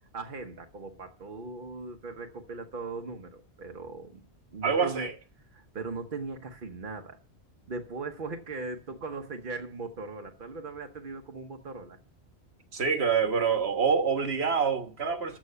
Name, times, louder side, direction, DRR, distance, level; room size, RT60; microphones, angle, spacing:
voice 1, 0.1-4.3 4.5-5.1 5.5-7.2 7.7-12.0, right 3 dB, 55° right, 1.2 m, -39 dB
voice 2, 4.6-5.1 12.7-15.4, right 6 dB, 70° right, 1.6 m, -26 dB
13.5 x 6.1 x 6.7 m
omnidirectional pair, 1.1 m